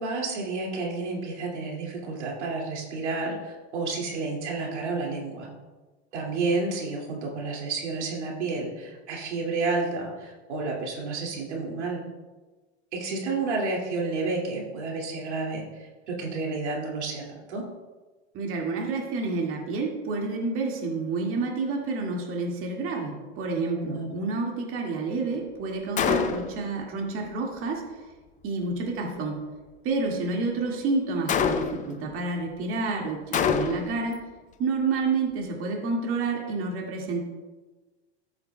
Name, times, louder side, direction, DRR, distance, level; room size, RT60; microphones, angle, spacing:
voice 1, 0.0-5.5 6.1-12.0 12.9-17.2 17.5-17.7 23.8-24.1, right 3 dB, 90° right, -2 dB, 2.5 m, -30 dB
voice 2, 18.3-27.8 28.4-29.4 29.8-34.3 34.6-37.2, right 3 dB, 40° right, 0 dB, 2.0 m, -29 dB
Gunshot gunfire, 26.0-26.7 31.3-32.0 33.3-34.0, left 7 dB, 25° left, 0.6 m, -25 dB
14.0 x 8.0 x 2.3 m, 1.3 s
hypercardioid pair, 110°, 33 cm